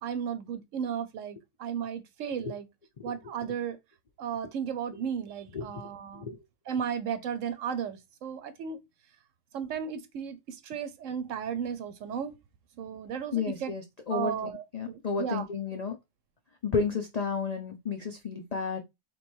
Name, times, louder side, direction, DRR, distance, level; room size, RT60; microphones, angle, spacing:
voice 1, 0.0-2.7 3.0-3.8 4.2-6.3 6.7-8.8 9.5-12.4 12.8-13.7 14.1-15.5, right 8 dB, 65° right, 0.9 m, -34 dB
voice 2, 13.3-16.0 16.6-18.8, left 5 dB, 80° left, 0.3 m, -32 dB
3.1 x 3.0 x 4.3 m
omnidirectional pair, 1.5 m